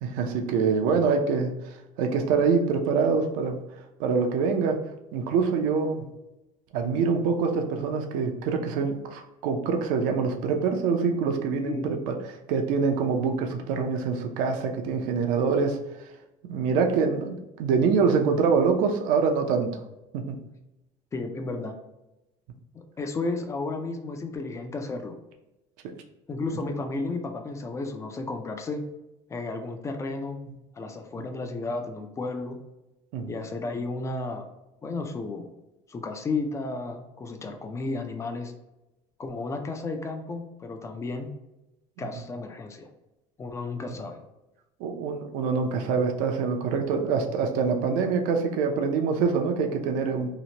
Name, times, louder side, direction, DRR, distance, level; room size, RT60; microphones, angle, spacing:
voice 1, 0.0-3.6 4.0-4.8 5.1-6.0 6.7-12.1 12.5-16.1 16.5-19.8 20.1-20.4 33.1-33.3 42.0-42.1 44.8-50.3, right 5 dB, 75° right, 4 dB, 0.5 m, -25 dB
voice 2, 21.1-21.8 22.7-25.2 26.3-28.8 29.3-30.4 30.7-32.6 33.3-34.5 34.8-35.5 35.9-38.5 39.2-41.3 42.0-42.9 43.4-44.2, left 3 dB, 20° left, 5 dB, 0.4 m, -33 dB
2.8 x 2.1 x 2.8 m, 0.95 s
cardioid pair, 120°, 14 cm